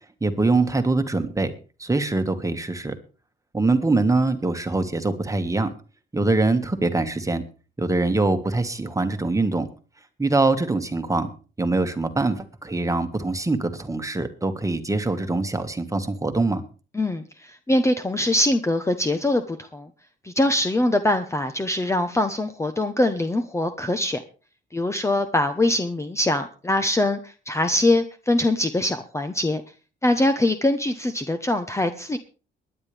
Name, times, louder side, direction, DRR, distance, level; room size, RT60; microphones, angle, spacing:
voice 1, 0.2-1.5 1.8-2.9 3.5-5.7 6.1-7.5 7.8-9.7 10.2-11.3 11.6-16.6, right 2 dB, 15° right, 7 dB, 1.7 m, -23 dB
voice 2, 16.9-19.9 20.2-24.2 24.7-29.6 30.0-32.2, left 1 dB, 15° left, 8 dB, 1.0 m, -23 dB
22.5 x 10.0 x 3.4 m, 0.35 s
cardioid pair, 90°, 20 cm